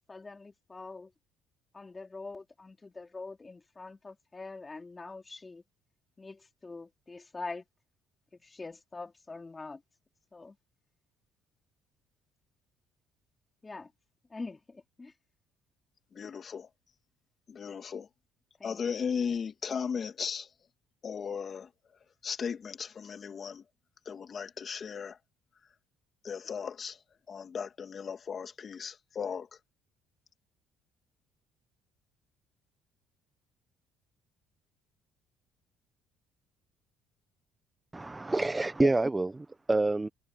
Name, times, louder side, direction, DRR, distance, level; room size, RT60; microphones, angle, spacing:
voice 1, 0.1-1.1 1.7-5.6 6.2-7.6 8.3-9.8 10.3-10.6 13.6-13.9 14.3-15.1 18.6-18.8, left 3 dB, 25° left, 3.4 m, -44 dB
voice 2, 16.1-16.7 17.5-18.1 18.6-20.5 21.0-21.7 22.2-23.6 24.1-25.2 26.2-27.0 27.3-29.5 38.8-38.9, left 6 dB, 45° left, 2.4 m, -36 dB
voice 3, 37.9-40.1, right 2 dB, 15° right, 1.2 m, -27 dB
supercardioid pair, 85°, 0 cm